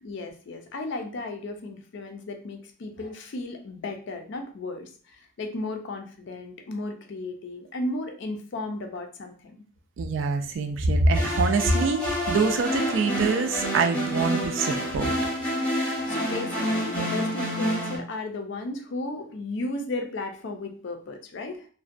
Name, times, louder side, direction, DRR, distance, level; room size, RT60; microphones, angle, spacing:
voice 1, 0.0-9.6 16.1-21.7, left 2 dB, 60° left, 5 dB, 0.4 m, -34 dB
voice 2, 10.0-15.2, right 3 dB, 65° right, 6 dB, 0.3 m, -24 dB
sound 1, 11.1-18.0, equal, 5° left, 0.7 m, -28 dB
2.5 x 2.1 x 2.4 m, 0.42 s
head